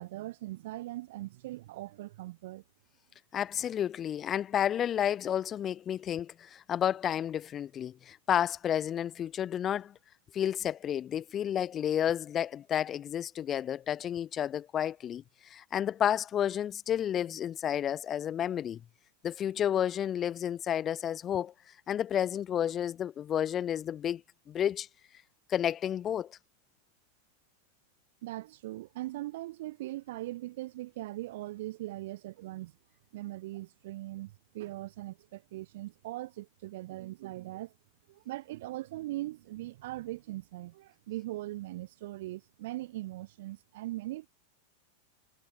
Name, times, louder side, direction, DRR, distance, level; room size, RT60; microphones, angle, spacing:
voice 1, 0.0-2.6 28.2-32.7 33.1-37.7 38.1-44.3, right 17 dB, 55° right, 0.7 m, -40 dB
voice 2, 3.3-9.9 10.3-18.8 19.2-21.5 21.9-24.2 24.5-24.9 25.5-26.4, left 10 dB, 25° left, 0.3 m, -31 dB
figure-of-eight pair, 90°, 0 cm